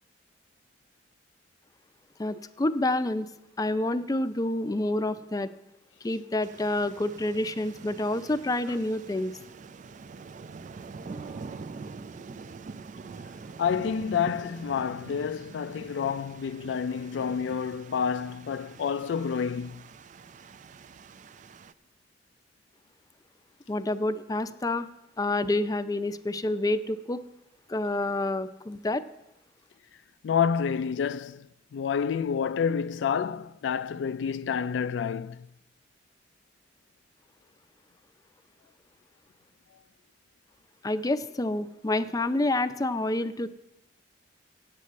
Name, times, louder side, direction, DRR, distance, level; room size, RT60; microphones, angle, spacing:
voice 1, 2.2-3.3 3.6-5.5 6.0-9.3 23.7-24.9 25.2-27.2 27.7-29.0 40.8-43.5, left 2 dB, 20° left, 0.4 m, -28 dB
sound 1, 6.4-21.7, right 4 dB, 45° right, 0.4 m, -45 dB
Bass guitar, 11.1-14.1, right 6 dB, 15° right, 0.9 m, -53 dB
voice 2, 13.6-19.8 30.2-31.5 31.7-35.5, left 7 dB, 85° left, 0.3 m, -29 dB
8.3 x 7.9 x 8.4 m
head